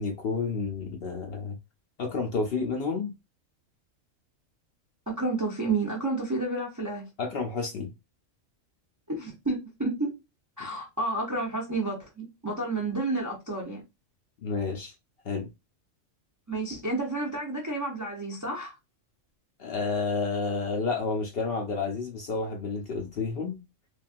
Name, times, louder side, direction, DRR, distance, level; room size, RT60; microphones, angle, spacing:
voice 1, 0.0-1.6 2.0-3.1 7.2-7.9 14.4-14.9 15.2-15.5 19.6-23.6, left 4 dB, 65° left, 0.6 m, -30 dB
voice 2, 5.1-7.0 9.1-10.1 10.6-13.8 16.5-18.7, right 2 dB, 30° right, 0.3 m, -30 dB
3.2 x 2.4 x 2.4 m
omnidirectional pair, 1.4 m